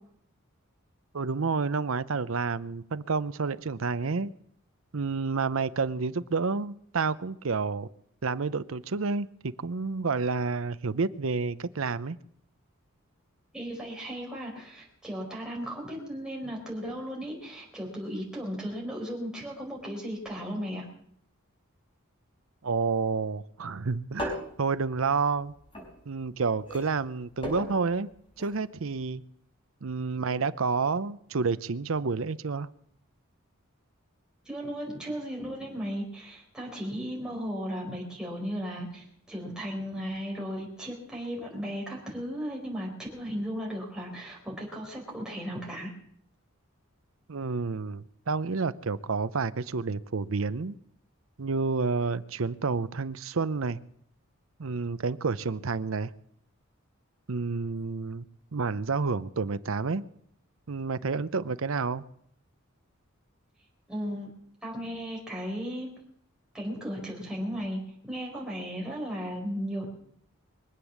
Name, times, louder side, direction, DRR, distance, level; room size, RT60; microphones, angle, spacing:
voice 1, 1.1-4.3 4.9-7.9 8.2-12.2 22.6-25.5 26.1-28.1 28.4-29.2 29.8-32.7 47.3-50.7 51.4-53.8 54.6-56.1 57.3-58.3 58.5-60.0 60.7-62.0, right 4 dB, 70° right, 15 dB, 0.7 m, -29 dB
voice 2, 13.5-20.8 34.4-45.9 63.9-64.3 64.6-65.9 66.5-69.9, equal, 5° right, -3 dB, 4.8 m, -36 dB
sound 1, 24.1-26.3 26.6-28.6 28.9-29.0, left 1 dB, 25° left, 6.0 m, -37 dB
23.5 x 8.2 x 7.2 m, 0.67 s
head